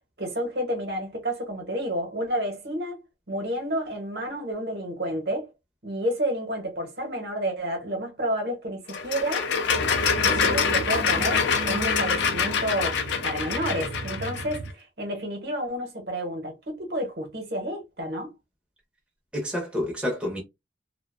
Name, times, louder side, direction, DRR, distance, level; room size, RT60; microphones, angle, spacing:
voice 1, 0.2-3.0 3.3-5.5 5.8-9.5 10.2-18.3, equal, 60° right, 0.8 m, -30 dB
sound 1, 8.9-14.6, left 6 dB, 75° left, 0.4 m, -25 dB
sound 2, 9.7-14.7, right 3 dB, 75° right, 0.3 m, -35 dB
voice 2, 19.3-20.4, left 1 dB, 5° right, 0.6 m, -29 dB
2.4 x 2.1 x 2.4 m
head